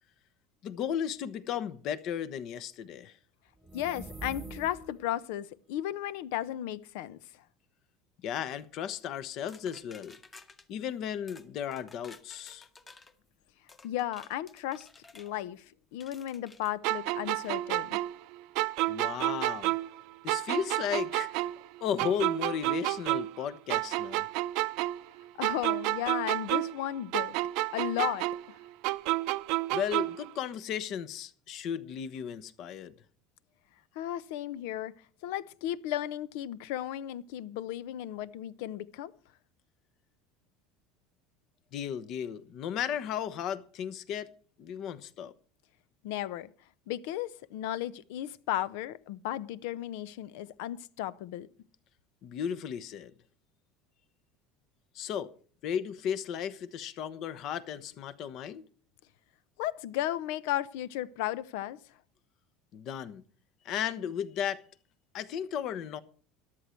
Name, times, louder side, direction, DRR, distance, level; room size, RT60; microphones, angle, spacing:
voice 1, 0.6-3.2 8.2-10.2 10.7-12.7 18.9-19.8 20.2-21.4 21.8-24.3 29.7-32.9 41.7-44.3 44.6-45.3 52.2-53.1 54.9-55.3 55.6-58.6 62.7-63.2 63.6-64.6 65.1-66.0, left 8 dB, 50° left, 1.0 m, -35 dB
sound 1, 3.6-5.1, right 2 dB, 10° right, 1.1 m, -44 dB
voice 2, 3.7-7.4 13.8-14.9 15.1-18.0 25.4-27.4 27.7-28.6 33.9-34.9 35.2-39.1 46.0-46.5 46.9-51.5 59.6-61.8, left 12 dB, 80° left, 0.8 m, -35 dB
sound 2, 9.5-10.7 11.3-11.5 11.7-13.1 13.7-15.3 16.0-16.7 17.3-17.5, left 3 dB, 20° left, 1.2 m, -54 dB
sound 3, 16.8-20.0 20.3-23.4 23.7-26.9 27.1-30.3, right 19 dB, 65° right, 0.6 m, -30 dB
13.5 x 11.5 x 4.5 m
cardioid pair, 150°, 0 cm